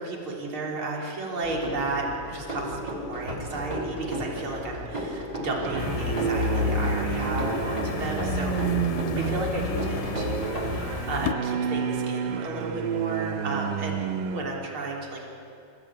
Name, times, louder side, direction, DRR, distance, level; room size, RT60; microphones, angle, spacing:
voice 1, 0.0-8.5 9.1-15.3, right 2 dB, 40° right, -2 dB, 4.0 m, -33 dB
sound 1, 1.4-10.7, equal, 10° right, 3.4 m, -34 dB
sound 2, 5.6-14.4, right 8 dB, 90° right, 2.7 m, -30 dB
sound 3, 5.8-11.3, left 8 dB, 80° left, 2.2 m, -31 dB
28.0 x 15.5 x 8.8 m, 2.7 s
omnidirectional pair, 3.8 m